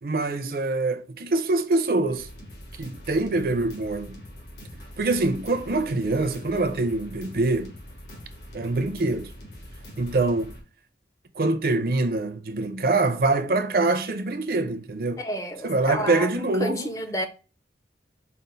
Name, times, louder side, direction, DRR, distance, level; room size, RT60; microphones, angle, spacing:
voice 1, 0.0-2.3 2.8-4.2 5.0-7.7 8.5-9.3 10.0-10.5 11.4-15.2 15.6-17.0, right 2 dB, 55° right, 0.5 m, -24 dB
sound 1, 2.1-10.6, equal, 70° left, 1.7 m, -43 dB
voice 2, 15.2-16.3 16.6-17.3, left 1 dB, 20° left, 0.5 m, -30 dB
5.1 x 2.4 x 3.8 m
head